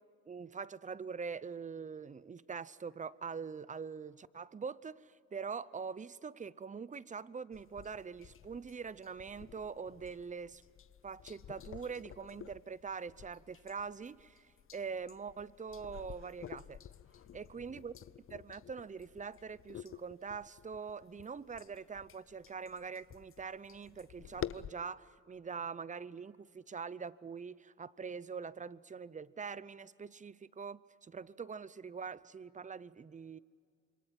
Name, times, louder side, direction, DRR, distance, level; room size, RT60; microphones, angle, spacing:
voice 1, 0.3-10.6 11.0-16.8 17.3-17.9 18.3-33.4, right 5 dB, 25° right, 0.7 m, -44 dB
sound 1, 7.5-24.7, left 9 dB, 45° left, 0.7 m, -51 dB
26.5 x 23.5 x 7.6 m
cardioid pair, 90°, 30 cm